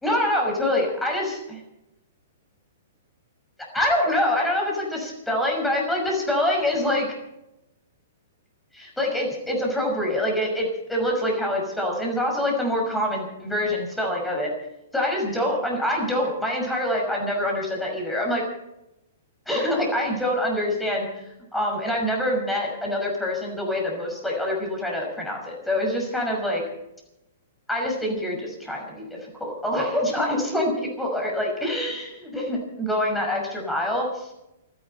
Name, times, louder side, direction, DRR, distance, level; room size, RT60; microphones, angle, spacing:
voice 1, 0.0-1.6 3.6-7.1 8.7-14.5 14.9-18.4 19.5-26.6 27.7-34.3, left 1 dB, 5° left, 0 dB, 5.8 m, -25 dB
29.0 x 11.0 x 4.4 m, 0.90 s
figure-of-eight pair, 110°, 0 cm